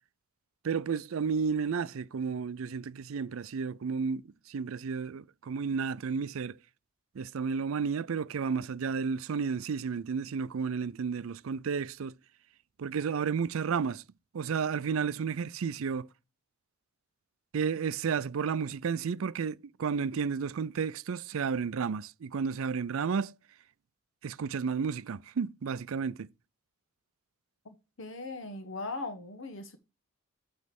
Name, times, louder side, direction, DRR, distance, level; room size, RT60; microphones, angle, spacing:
voice 1, 0.6-6.6 7.1-12.1 12.8-14.0 14.3-16.1 17.5-23.3 24.2-26.3, right 6 dB, 75° right, 0.4 m, -32 dB
voice 2, 28.0-29.8, left 3 dB, 70° left, 1.1 m, -39 dB
9.3 x 3.2 x 5.8 m
head